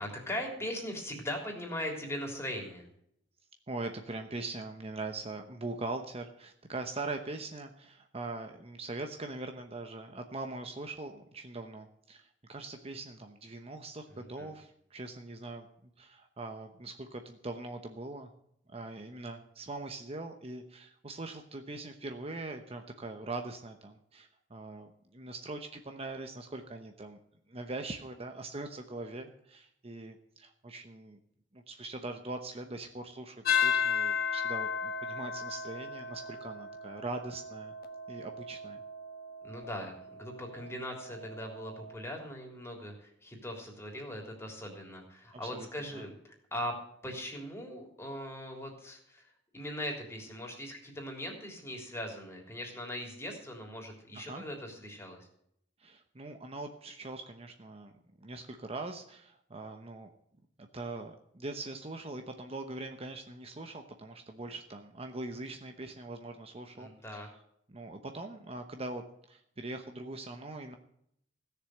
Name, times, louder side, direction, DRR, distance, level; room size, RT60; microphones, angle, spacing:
voice 1, 0.0-2.9 14.1-14.5 39.4-39.9 40.2-46.1 46.5-46.8 47.0-49.3 49.5-55.3 66.8-67.3, left 1 dB, 15° left, 1 dB, 3.4 m, -40 dB
voice 2, 3.7-18.3 18.7-27.2 27.5-31.2 31.5-37.7 38.1-38.8 45.4-46.1 54.1-54.4 55.8-57.9 58.2-60.1 60.7-67.3 67.7-70.8, right 2 dB, 30° right, 6 dB, 1.0 m, -42 dB
sound 1, 33.4-41.9, left 6 dB, 55° left, 1.4 m, -35 dB
16.0 x 7.0 x 7.8 m, 0.72 s
head